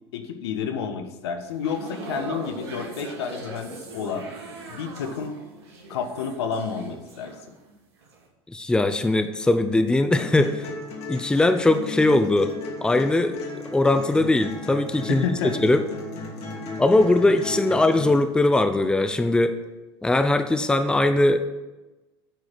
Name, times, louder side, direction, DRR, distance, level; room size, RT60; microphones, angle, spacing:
voice 1, 0.1-4.3 4.7-5.4 5.9-7.4 15.1-15.5, left 6 dB, 75° left, 7 dB, 1.2 m, -30 dB
sound 1, 1.5-7.7 8.0-8.3, right 3 dB, 80° right, 2.5 m, -40 dB
voice 2, 8.5-10.7 11.1-12.5 12.8-13.4 13.7-15.2 15.6-15.8 16.8-19.6 20.0-21.5, left 2 dB, 5° left, 9 dB, 0.6 m, -20 dB
sound 2, 10.2-18.2, left 2 dB, 50° left, 2.7 m, -35 dB
8.9 x 4.9 x 7.6 m, 1.1 s
hypercardioid pair, 95°, 14 cm